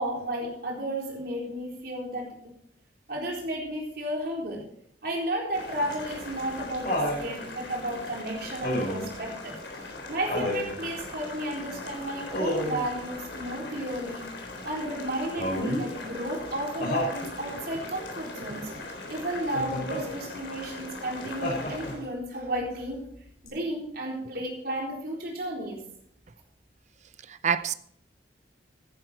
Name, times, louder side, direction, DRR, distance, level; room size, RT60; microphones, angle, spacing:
voice 1, 0.0-2.3 3.1-4.6 5.0-9.6 10.1-14.3 14.6-18.6 19.1-23.0 23.4-25.8, right 1 dB, 55° right, -1 dB, 4.1 m, -33 dB
Boiling, 5.5-21.9, left 2 dB, 80° left, 3.8 m, -40 dB
Laughter, 5.9-7.2 8.6-9.1 10.3-10.7 12.3-12.9 15.4-15.9 16.8-17.2 19.5-20.0 21.4-22.1 23.5-23.6, left 1 dB, 50° left, 6.1 m, -29 dB
voice 2, 18.5-18.8 27.3-27.7, right 7 dB, 40° right, 13 dB, 0.6 m, -29 dB
14.0 x 10.5 x 4.4 m, 0.67 s
head